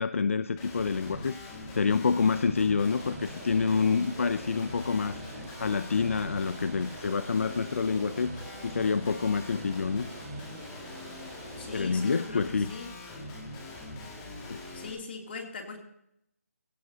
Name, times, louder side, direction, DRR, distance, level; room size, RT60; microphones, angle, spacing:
voice 1, 0.0-1.4 1.7-8.3 8.6-10.1 11.7-12.7 14.5-14.6, left 5 dB, 60° left, 13 dB, 0.6 m, -27 dB
Guitar, 0.6-14.9, left 2 dB, 15° left, 2.1 m, -42 dB
Rain, 2.8-12.0, right 4 dB, 20° right, 1.8 m, -48 dB
voice 2, 11.6-12.9 14.7-15.8, left 4 dB, 45° left, 2 dB, 2.9 m, -40 dB
18.5 x 17.0 x 2.8 m, 0.77 s
hypercardioid pair, 170°, 8 cm